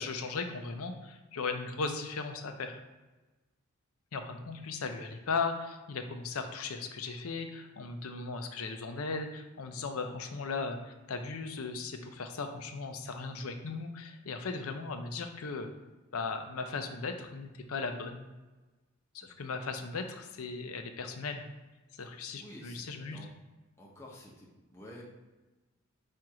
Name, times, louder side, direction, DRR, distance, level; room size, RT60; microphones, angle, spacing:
voice 1, 0.0-2.8 4.1-15.7 16.1-18.3 19.1-21.5 22.0-23.2, left 4 dB, 75° left, 6 dB, 0.6 m, -37 dB
voice 2, 22.4-23.3 23.8-25.0, left 1 dB, 10° left, -4 dB, 0.7 m, -51 dB
4.4 x 2.5 x 4.8 m, 1.2 s
head